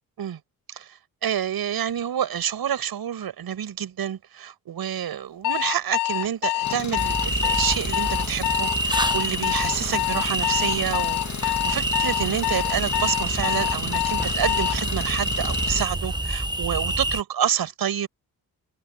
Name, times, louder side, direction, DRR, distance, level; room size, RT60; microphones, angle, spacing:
voice 1, 0.7-18.1, right 9 dB, 65° right, 6.6 m, -28 dB
Alarm, 5.4-14.8, left 16 dB, 90° left, 3.2 m, -26 dB
Engine, 6.6-15.9, left 7 dB, 45° left, 2.3 m, -34 dB
sound 1, 7.0-17.2, right 1 dB, 10° right, 1.4 m, -28 dB
supercardioid pair, 60°, 39 cm